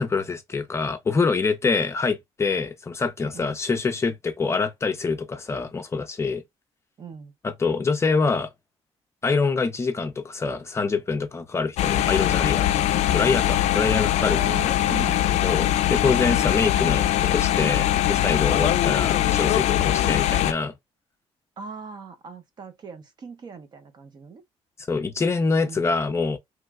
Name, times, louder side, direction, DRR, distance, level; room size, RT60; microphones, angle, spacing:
voice 1, 0.0-6.4 7.4-8.5 9.2-12.7 13.1-14.4 15.4-20.7 24.9-26.4, left 4 dB, 25° left, 0.5 m, -25 dB
voice 2, 7.0-7.3 14.2-15.2 21.6-24.4 25.6-25.9, right 5 dB, 40° right, 0.7 m, -39 dB
sound 1, 11.8-20.5, left 12 dB, 85° left, 0.4 m, -22 dB
3.0 x 2.2 x 3.5 m
cardioid pair, 150°, 11 cm